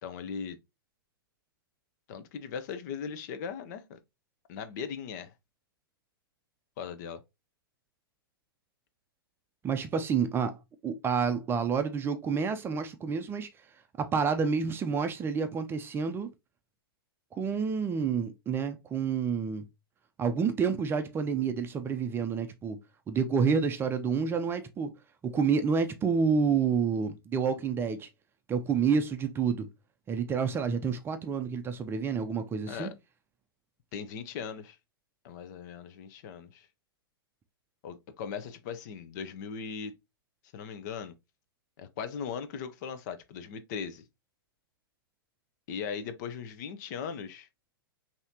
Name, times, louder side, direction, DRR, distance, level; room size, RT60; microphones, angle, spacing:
voice 1, 0.0-0.6 2.1-4.0 4.5-5.3 6.8-7.2 32.7-32.9 33.9-34.8 35.2-36.7 37.8-39.9 40.5-41.1 41.8-44.0 45.7-47.5, left 6 dB, 50° left, 0.8 m, -38 dB
voice 2, 9.6-10.6 10.8-13.5 14.0-16.3 17.3-19.7 20.2-22.8 23.1-24.9 25.2-28.1 28.5-29.7 30.1-32.9, right 6 dB, 20° right, 0.5 m, -29 dB
5.6 x 2.9 x 2.8 m
hypercardioid pair, 115°, 13 cm